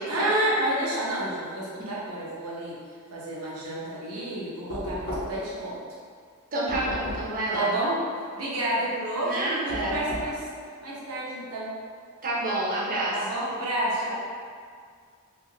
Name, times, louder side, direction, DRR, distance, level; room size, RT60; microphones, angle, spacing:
voice 1, 0.1-2.8 3.1-5.8 7.5-10.5 10.8-11.7 13.1-14.1, right 1 dB, 80° right, -7 dB, 0.7 m, -29 dB
Knock, 4.7-5.6 6.7-7.4 9.7-10.4, left 1 dB, 45° left, 0.7 m, -34 dB
voice 2, 6.5-7.6 9.2-9.9 12.2-13.1, right 2 dB, 40° right, -6 dB, 0.6 m, -28 dB
2.6 x 2.4 x 3.1 m, 2.1 s
head